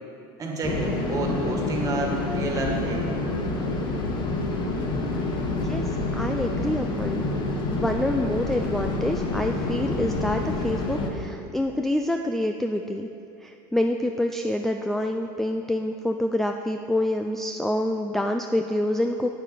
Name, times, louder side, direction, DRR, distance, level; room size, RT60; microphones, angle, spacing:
voice 1, 0.4-3.1, right 2 dB, 30° right, 0 dB, 1.8 m, -29 dB
sound 1, 0.6-11.1, left 2 dB, 40° left, 1.2 m, -28 dB
voice 2, 6.2-7.2 7.7-13.1 13.4-19.3, left 1 dB, 5° left, 4 dB, 0.3 m, -27 dB
8.3 x 8.3 x 5.0 m, 2.7 s
supercardioid pair, 115°, 12 cm